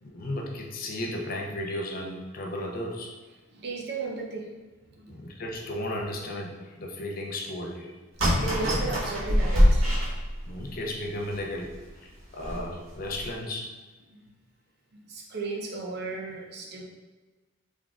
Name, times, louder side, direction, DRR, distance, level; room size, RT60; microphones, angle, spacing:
voice 1, 0.0-3.1 5.1-7.9 10.5-11.7 12.0-13.7, left 1 dB, 45° left, 0 dB, 0.5 m, -34 dB
voice 2, 3.5-4.5 5.0-5.1 8.3-9.9 14.9-16.8, right 3 dB, 55° right, 0 dB, 0.6 m, -35 dB
sound 1, 8.2-10.7 11.3-11.4 11.7-11.8 12.4-12.7 13.1-13.3, equal, 80° right, 1.4 m, -24 dB
3.9 x 3.4 x 2.4 m, 1.3 s
head